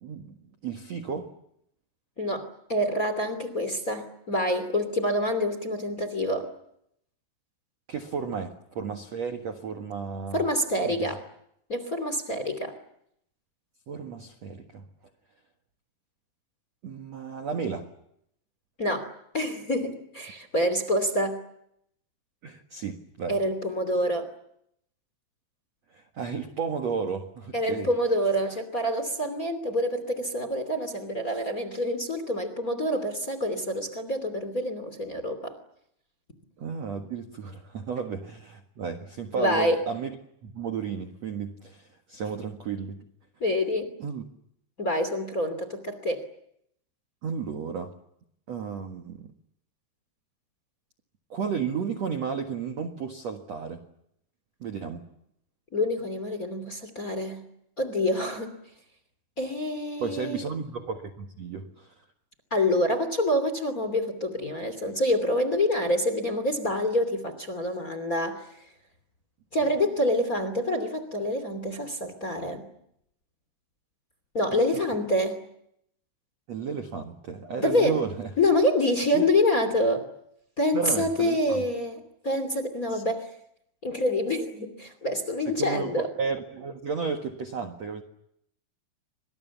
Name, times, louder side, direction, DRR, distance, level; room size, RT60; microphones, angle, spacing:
voice 1, 0.0-1.3 7.9-10.4 10.8-11.2 13.9-14.8 16.8-17.9 22.4-23.4 25.9-27.9 36.6-40.1 40.4-43.0 44.0-44.2 47.2-47.9 48.5-49.3 51.3-53.8 54.6-55.0 60.0-61.9 74.5-74.8 76.5-78.3 79.1-79.2 80.7-81.6 82.9-83.0 85.5-88.0, right 6 dB, 55° right, 5 dB, 1.9 m, -33 dB
voice 2, 2.2-6.5 10.3-11.2 11.7-12.7 18.8-19.1 19.3-21.4 23.3-24.3 27.5-35.5 39.4-39.8 43.4-43.9 44.8-46.2 55.7-57.4 57.8-58.5 59.4-60.4 62.5-68.5 69.5-72.7 74.3-75.4 77.6-78.0 78.4-80.1 80.6-83.3 83.8-86.1, left 1 dB, 25° left, 11 dB, 2.4 m, -27 dB
29.5 x 26.0 x 7.2 m, 0.74 s
omnidirectional pair, 5.4 m